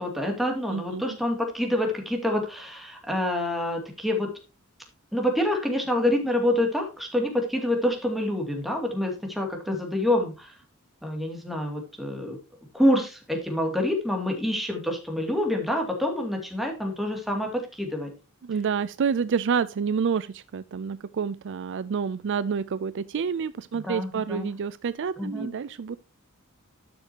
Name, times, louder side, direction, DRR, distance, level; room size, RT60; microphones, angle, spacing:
voice 1, 0.0-4.3 5.1-10.5 11.0-12.4 12.7-18.1 23.7-24.5 25.2-25.5, left 1 dB, ahead, 2.5 m, -27 dB
voice 2, 0.7-1.2 18.4-26.0, right 6 dB, 55° right, 0.4 m, -28 dB
12.5 x 6.6 x 2.9 m
head